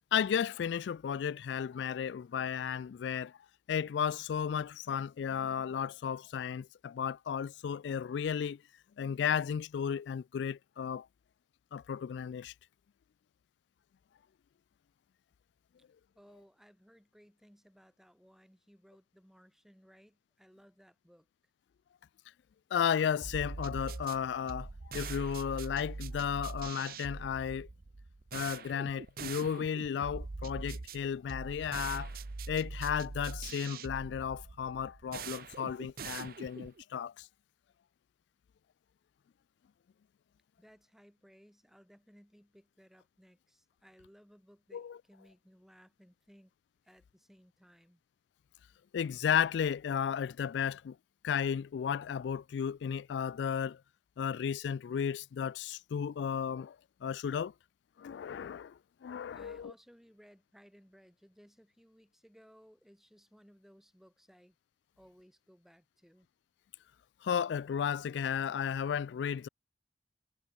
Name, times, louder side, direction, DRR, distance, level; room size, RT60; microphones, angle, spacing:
voice 1, 0.1-3.3 3.7-8.6 9.0-11.1 11.7-12.5 22.7-27.7 28.3-32.1 32.5-37.3 44.7-45.0 48.9-51.0 51.2-53.8 54.2-56.8 57.0-57.5 58.0-59.7 67.2-69.5, left 7 dB, 85° left, 0.3 m, -34 dB
voice 2, 16.1-21.3 40.6-46.5 46.8-48.0 59.3-64.6 65.0-66.3, equal, ahead, 7.7 m, -61 dB
sound 1, 23.2-36.8, right 4 dB, 55° right, 0.7 m, -43 dB
head